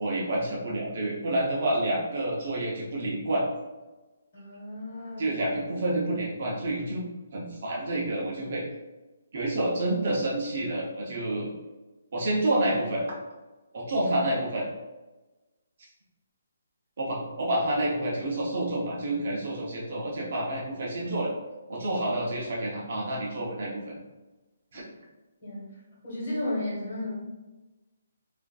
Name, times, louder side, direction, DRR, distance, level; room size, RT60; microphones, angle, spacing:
voice 1, 0.0-3.5 5.2-8.6 9.3-11.5 12.1-13.0 13.7-14.7 17.0-21.3 21.7-23.8 24.7-24.8, right 1 dB, 35° right, -4 dB, 0.7 m, -28 dB
voice 2, 4.3-5.3 25.4-25.7 26.0-27.1, left 1 dB, 30° left, -6 dB, 1.5 m, -33 dB
4.9 x 2.5 x 2.3 m, 1.1 s
hypercardioid pair, 180°, 0 cm